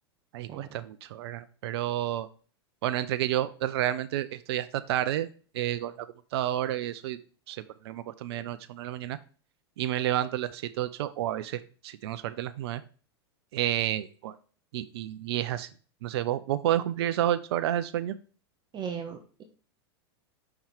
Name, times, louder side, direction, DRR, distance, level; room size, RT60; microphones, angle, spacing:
voice 1, 0.3-2.3 2.8-5.3 5.5-7.2 7.5-9.2 9.8-12.8 13.5-14.4 14.7-15.7 16.0-18.2, right 12 dB, 70° right, 13 dB, 0.5 m, -30 dB
voice 2, 18.7-19.4, right 7 dB, 30° right, 4 dB, 0.9 m, -37 dB
5.6 x 3.7 x 4.5 m, 0.40 s
hypercardioid pair, 100°, 14 cm